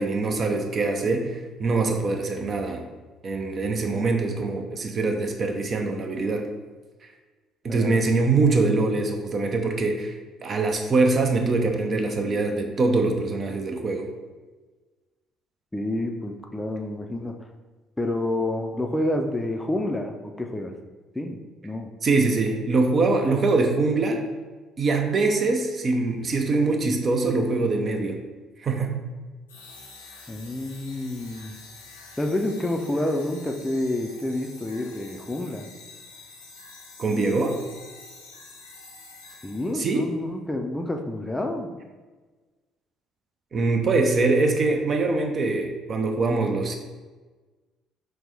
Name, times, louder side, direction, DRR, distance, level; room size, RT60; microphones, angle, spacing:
voice 1, 0.0-2.8 3.2-6.4 7.6-10.1 10.4-14.1 22.0-24.2 24.8-28.2 28.6-29.0 37.0-37.6 39.7-40.1 43.5-46.8, right 3 dB, 40° right, 4 dB, 0.5 m, -23 dB
voice 2, 7.7-8.0 15.7-17.4 18.0-20.7 21.1-21.4 21.6-21.9 30.3-31.6 32.2-35.7 39.4-41.7, left 1 dB, 10° left, 3 dB, 0.4 m, -28 dB
sound 1, 29.5-40.0, left 3 dB, 80° left, 0.6 m, -47 dB
5.8 x 2.1 x 3.3 m, 1.3 s
figure-of-eight pair, 50°, 0 cm